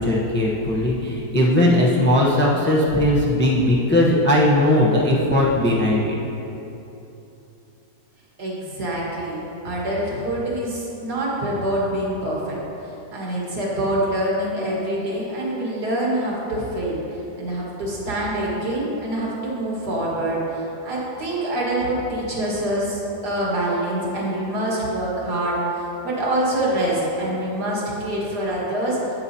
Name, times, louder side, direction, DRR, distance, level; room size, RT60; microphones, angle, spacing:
voice 1, 0.0-6.2, left 1 dB, 10° left, -4 dB, 0.6 m, -18 dB
voice 2, 8.4-12.6 13.1-17.0 17.4-25.6 26.0-29.2, right 1 dB, 85° right, -5 dB, 2.2 m, -25 dB
9.6 x 8.9 x 2.8 m, 3.0 s
omnidirectional pair, 1.7 m